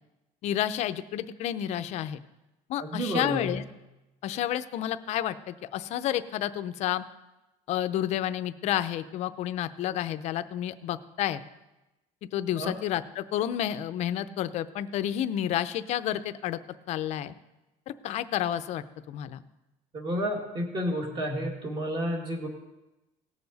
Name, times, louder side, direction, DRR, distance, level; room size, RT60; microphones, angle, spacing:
voice 1, 0.4-2.2 2.7-3.6 4.2-7.0 7.7-11.4 12.3-16.6 16.9-17.3 17.9-19.4, left 11 dB, 45° left, 11 dB, 0.5 m, -30 dB
voice 2, 2.8-3.5 12.6-12.7 19.9-22.5, equal, 30° right, 2 dB, 1.9 m, -31 dB
18.5 x 6.9 x 4.0 m, 0.99 s
cardioid pair, 165°, 16 cm